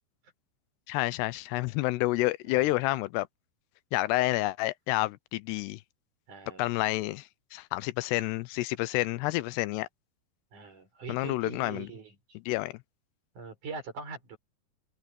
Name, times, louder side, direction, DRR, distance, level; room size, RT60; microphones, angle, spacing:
voice 1, 0.9-3.3 3.9-5.8 6.6-7.2 7.5-9.9 11.1-11.9 12.5-12.7, left 19 dB, 85° left, 2.7 m, -29 dB
voice 2, 6.3-6.7 9.0-9.3 10.5-12.4 13.4-14.4, right 4 dB, 45° right, 7.4 m, -43 dB
omnidirectional pair, 4.9 m